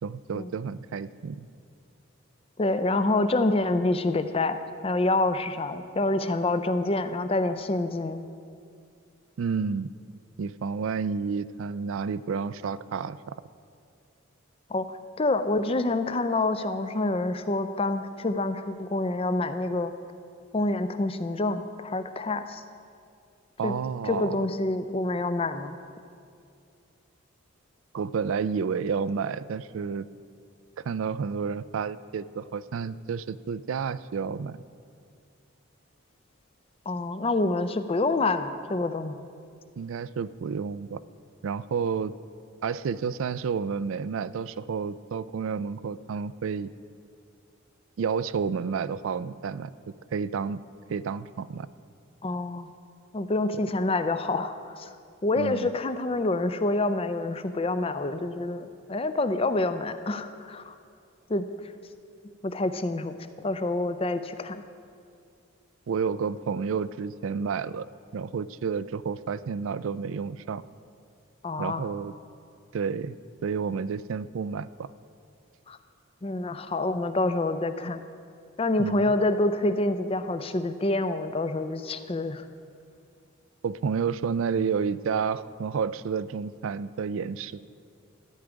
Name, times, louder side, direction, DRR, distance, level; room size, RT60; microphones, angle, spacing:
voice 1, 0.0-1.5 9.4-9.9 10.4-13.3 23.6-24.5 27.9-30.1 30.8-34.6 39.8-41.0 41.4-42.1 42.6-46.7 48.0-49.7 50.1-50.6 50.9-51.7 55.4-55.7 65.9-67.9 68.1-70.6 71.6-72.1 72.7-73.2 73.4-74.9 78.8-79.1 83.6-87.6, right 6 dB, 65° right, 17 dB, 0.3 m, -30 dB
voice 2, 2.6-4.6 4.8-8.3 14.7-19.9 20.5-22.6 23.6-23.7 24.1-25.8 36.9-39.2 52.2-52.7 53.1-54.9 55.2-60.7 61.3-61.5 62.4-64.6 71.4-71.9 75.7-75.8 76.2-78.0 78.6-82.4, left 2 dB, 25° left, 10 dB, 0.5 m, -27 dB
14.0 x 5.0 x 8.9 m, 2.3 s
head